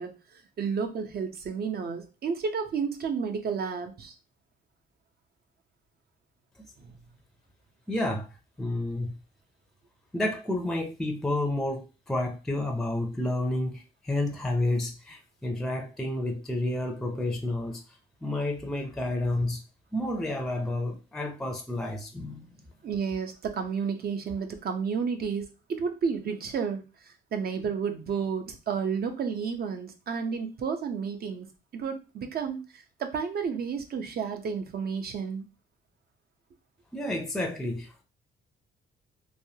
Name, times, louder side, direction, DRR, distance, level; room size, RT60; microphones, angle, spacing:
voice 1, 0.0-4.1 6.8-6.9 22.8-26.8 27.3-31.5 31.7-35.4, right 6 dB, 50° right, 0.7 m, -31 dB
voice 2, 7.9-8.3 8.6-9.1 10.1-17.8 18.2-19.6 19.9-22.5 36.9-38.0, left 1 dB, ahead, 0.6 m, -30 dB
3.2 x 2.2 x 2.7 m
cardioid pair, 90°, 20 cm